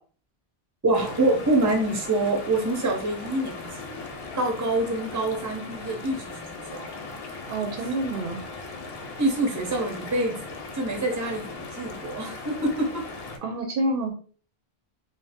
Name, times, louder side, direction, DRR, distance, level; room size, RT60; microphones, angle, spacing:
voice 1, 0.8-4.1 4.4-6.9 9.2-13.1, right 2 dB, 20° right, 1 dB, 0.6 m, -26 dB
sound 1, 0.9-13.4, left 3 dB, 75° left, 0.8 m, -38 dB
voice 2, 7.5-8.4 13.4-14.1, right 2 dB, 65° right, 3 dB, 0.7 m, -27 dB
2.6 x 2.1 x 3.4 m, 0.41 s
omnidirectional pair, 1.0 m